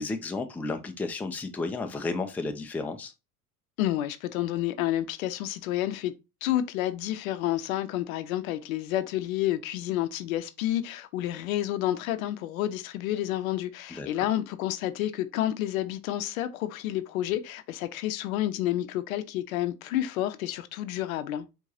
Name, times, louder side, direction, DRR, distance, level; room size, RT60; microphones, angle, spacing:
voice 1, 0.0-3.1 14.0-14.1, left 3 dB, 5° left, 0.5 m, -32 dB
voice 2, 3.8-6.1 6.4-21.5, left 13 dB, 60° left, 0.7 m, -30 dB
4.6 x 3.7 x 2.7 m
figure-of-eight pair, 70°, 46 cm